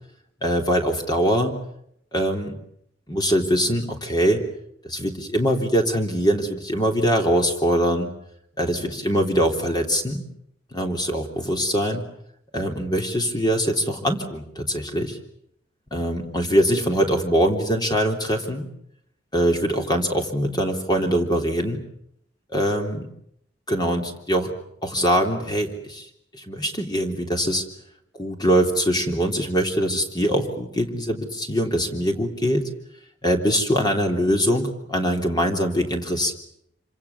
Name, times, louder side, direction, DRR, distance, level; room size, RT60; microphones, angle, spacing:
voice 1, 0.4-1.5 2.1-2.6 3.1-4.4 4.8-8.1 8.6-10.3 10.7-12.0 12.5-15.2 15.9-18.7 19.3-21.8 22.5-23.1 23.7-24.5 24.8-26.1 26.3-27.6 28.1-32.7 33.2-36.3, equal, 20° left, 3 dB, 3.5 m, -23 dB
27.0 x 26.0 x 7.3 m, 0.72 s
head